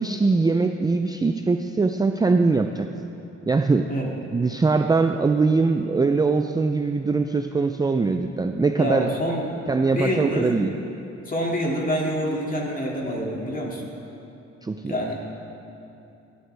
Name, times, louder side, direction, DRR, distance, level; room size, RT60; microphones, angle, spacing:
voice 1, 0.0-2.9 3.5-3.9 4.3-9.1 9.7-10.7 14.6-15.0, right 4 dB, 15° right, 6 dB, 0.4 m, -22 dB
voice 2, 8.8-9.6 9.9-10.5 11.3-13.8 14.9-15.2, equal, 30° left, -2 dB, 2.3 m, -26 dB
15.5 x 11.0 x 3.3 m, 2.8 s
cardioid pair, 90°, 30 cm